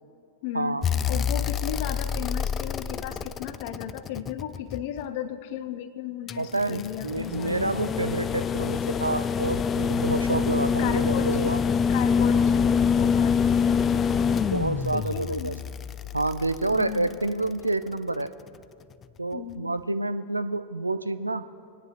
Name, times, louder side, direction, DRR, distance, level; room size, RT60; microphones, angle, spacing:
voice 1, 0.4-7.9 10.8-11.6 11.9-14.5 14.9-15.6 16.7-17.1 19.3-19.8, left 10 dB, 50° left, 13 dB, 0.7 m, -35 dB
sound 1, 0.8-5.0 6.3-17.5 19.0-19.1, left 6 dB, 25° left, 0.3 m, -26 dB
voice 2, 6.4-11.6 14.5-15.6 16.1-18.3 19.2-21.6, right 2 dB, 85° right, 11 dB, 0.4 m, -28 dB
20.5 x 9.7 x 3.0 m, 2.5 s
figure-of-eight pair, 90°, 0 cm